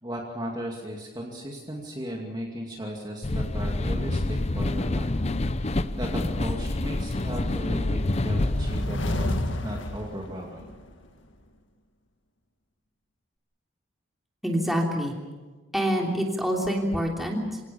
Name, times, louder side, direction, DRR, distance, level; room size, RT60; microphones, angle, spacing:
voice 1, 0.0-10.7, equal, 20° right, 0 dB, 2.5 m, -36 dB
sound 1, 3.2-8.8, left 2 dB, 35° left, 0.6 m, -27 dB
sound 2, 8.1-10.8, left 1 dB, 70° left, 2.0 m, -30 dB
voice 2, 14.4-15.2 15.7-17.6, equal, ahead, -1 dB, 3.2 m, -26 dB
27.0 x 18.0 x 7.0 m, 1.3 s
head